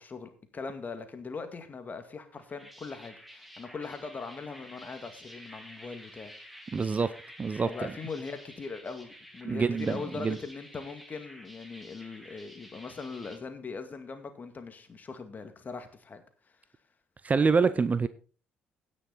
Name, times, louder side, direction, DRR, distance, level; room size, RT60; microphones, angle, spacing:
voice 1, 0.0-6.3 7.6-16.2, left 4 dB, 35° left, 8 dB, 2.1 m, -40 dB
sound 1, 2.3-13.4, equal, ahead, 2.4 m, -50 dB
voice 2, 6.7-7.1 7.4-7.9 9.4-10.4 17.2-18.1, right 5 dB, 30° right, 15 dB, 0.7 m, -26 dB
17.0 x 6.3 x 4.1 m, 0.39 s
figure-of-eight pair, 50°, 5 cm